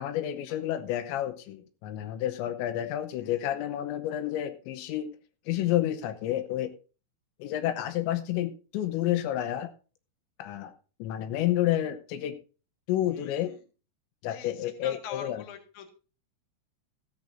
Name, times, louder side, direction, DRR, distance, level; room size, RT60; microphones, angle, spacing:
voice 1, 0.0-5.1 5.5-6.7 7.4-9.7 10.4-10.7 11.0-12.4 12.9-13.5 14.2-15.4, left 12 dB, 85° left, 9 dB, 3.2 m, -30 dB
voice 2, 3.2-3.5 13.0-13.6 14.3-15.9, left 7 dB, 55° left, 5 dB, 2.6 m, -44 dB
14.5 x 13.0 x 2.6 m, 0.35 s
omnidirectional pair, 5.3 m